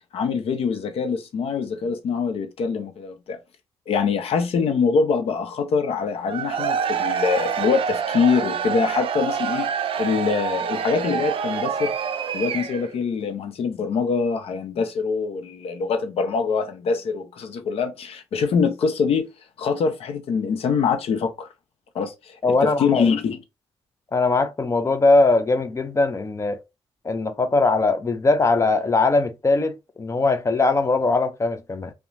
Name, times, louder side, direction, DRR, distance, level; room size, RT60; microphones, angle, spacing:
voice 1, 0.1-3.4 3.9-9.7 10.0-11.9 12.3-19.3 19.6-21.5 21.9-23.4, left 5 dB, 70° left, 0.7 m, -24 dB
Cheering / Crowd, 6.2-13.0, right 7 dB, 60° right, 0.4 m, -26 dB
voice 2, 22.4-23.1 24.1-26.6 27.0-31.9, left 3 dB, 30° left, 0.6 m, -20 dB
2.8 x 2.3 x 2.6 m
cardioid pair, 80°, 10 cm